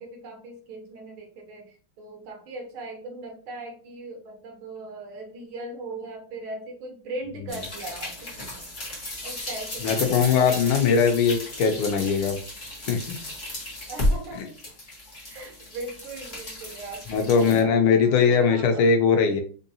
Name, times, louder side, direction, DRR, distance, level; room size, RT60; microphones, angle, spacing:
voice 1, 0.0-8.7 9.2-10.3 13.9-14.6 15.3-18.9, right 2 dB, 75° right, 2 dB, 1.8 m, -39 dB
sound 1, 7.5-17.6, left 1 dB, 30° left, 1.1 m, -33 dB
voice 2, 9.8-12.4 12.9-13.2 17.1-19.4, left 6 dB, 85° left, 6 dB, 1.5 m, -20 dB
4.6 x 2.6 x 2.7 m, 0.40 s
omnidirectional pair, 2.3 m